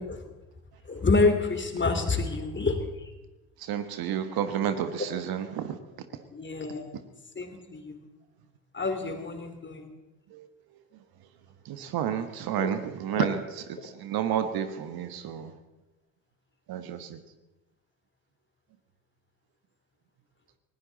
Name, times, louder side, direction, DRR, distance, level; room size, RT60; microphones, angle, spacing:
voice 1, 0.9-2.8 6.3-7.0 7.4-8.0 8.7-9.9 12.6-12.7 13.1-13.4, left 3 dB, 25° left, 6 dB, 2.9 m, -27 dB
voice 2, 3.7-5.8 11.7-13.4 14.0-15.5 16.7-17.1, right 9 dB, 55° right, 9 dB, 1.4 m, -30 dB
19.5 x 18.0 x 4.1 m, 1.0 s
hypercardioid pair, 60°, 44 cm